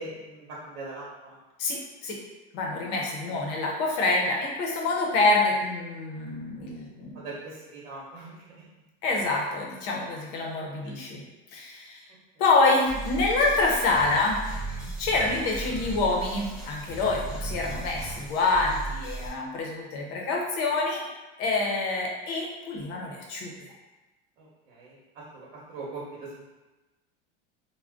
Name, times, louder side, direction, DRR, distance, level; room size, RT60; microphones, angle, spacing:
voice 1, 0.0-1.4 2.9-3.6 7.1-8.6 10.8-10.9 17.2-17.4 24.4-26.5, right 2 dB, 85° right, -6 dB, 0.9 m, -42 dB
voice 2, 1.6-2.2 2.5-7.2 9.0-11.2 11.5-12.1 12.4-14.4 14.7-21.0 21.4-23.5, left 3 dB, 50° left, -1 dB, 0.7 m, -26 dB
sound 1, 12.9-19.3, right 2 dB, 5° right, 0.5 m, -36 dB
2.5 x 2.1 x 3.5 m, 1.1 s
supercardioid pair, 160°, 30 cm